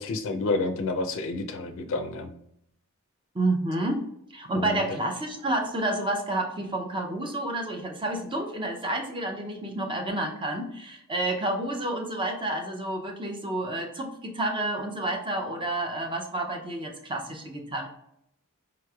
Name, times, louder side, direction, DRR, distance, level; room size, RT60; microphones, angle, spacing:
voice 1, 0.0-2.3 4.5-4.8, left 3 dB, 60° left, 7 dB, 0.4 m, -29 dB
voice 2, 3.3-4.1 4.3-17.9, right 1 dB, 20° right, 2 dB, 0.5 m, -30 dB
4.8 x 3.0 x 2.3 m, 0.75 s
head